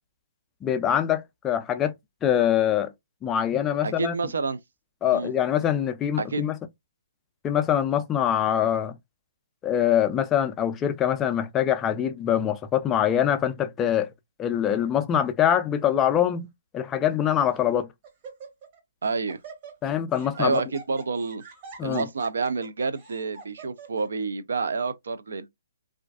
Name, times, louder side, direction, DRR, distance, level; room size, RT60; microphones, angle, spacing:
voice 1, 0.6-1.9 2.2-2.9 3.2-4.1 5.0-6.6 7.4-8.9 9.6-14.1 14.4-16.5 16.7-17.9 19.8-20.6 21.8-22.1, left 10 dB, 20° left, 0.3 m, -24 dB
voice 2, 3.8-4.6 5.1-5.3 6.2-6.4 19.0-19.4 20.4-21.4 21.8-25.5, right 4 dB, 70° right, 0.3 m, -28 dB
Laughter, 15.7-16.1 16.9-17.0 17.5-17.8 18.0-18.8 19.0-24.1, right 5 dB, 35° right, 0.9 m, -45 dB
2.4 x 2.2 x 2.3 m
hypercardioid pair, 140°, 0 cm